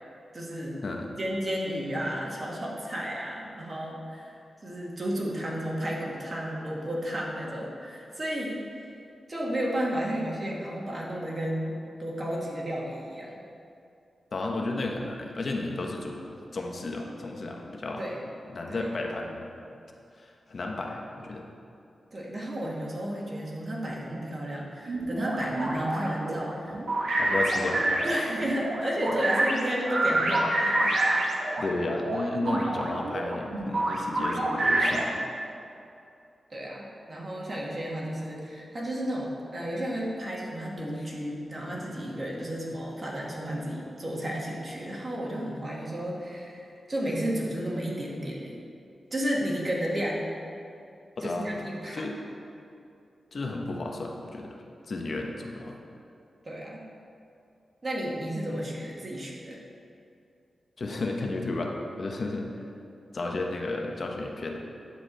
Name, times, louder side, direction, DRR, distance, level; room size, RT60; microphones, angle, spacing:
voice 1, 0.3-0.9 1.2-8.6 9.3-13.4 18.0-18.2 18.7-18.9 22.1-26.8 28.0-31.0 36.5-48.6 49.1-50.3 51.2-52.0 56.4-56.8 57.8-59.6, equal, 40° right, -3 dB, 2.3 m, -32 dB
voice 2, 14.3-18.0 18.5-19.5 20.2-21.4 27.2-28.0 31.6-35.1 51.2-51.5 51.9-52.2 53.3-54.5 54.9-55.8 60.8-62.5 63.1-64.6, left 2 dB, 60° left, 1 dB, 1.2 m, -33 dB
sound 1, 24.9-31.7 32.0-35.2, right 1 dB, 60° right, 1.6 m, -27 dB
10.5 x 4.9 x 7.7 m, 2.6 s
cardioid pair, 55°, 0 cm